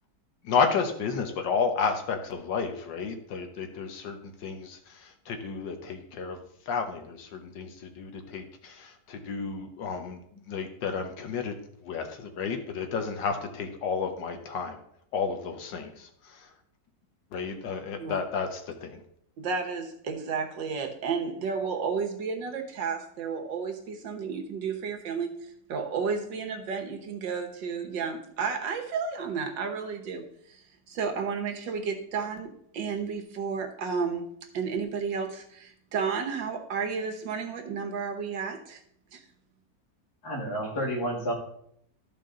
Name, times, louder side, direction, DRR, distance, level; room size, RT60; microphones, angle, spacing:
voice 1, 0.4-11.5 11.8-14.8 15.1-16.5 17.3-19.0, left 5 dB, 80° left, 6 dB, 1.7 m, -32 dB
voice 2, 19.4-25.3 25.7-30.6 30.9-34.2 34.5-38.8 39.1-39.2, right 5 dB, 80° right, 4 dB, 1.8 m, -32 dB
voice 3, 40.2-41.3, equal, 60° left, -1 dB, 2.4 m, -30 dB
12.5 x 5.2 x 3.8 m, 0.69 s
omnidirectional pair, 1.9 m